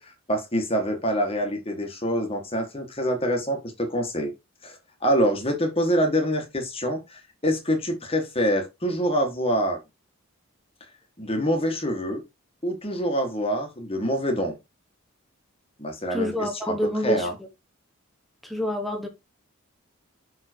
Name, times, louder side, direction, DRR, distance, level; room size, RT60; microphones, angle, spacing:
voice 1, 0.0-4.3 4.6-9.8 11.2-12.2 12.6-14.6 15.8-16.8 17.0-17.3, equal, 25° left, 1.8 m, -26 dB
voice 2, 16.1-17.3 18.4-19.1, left 1 dB, ahead, 1.3 m, -27 dB
5.9 x 4.7 x 4.6 m
head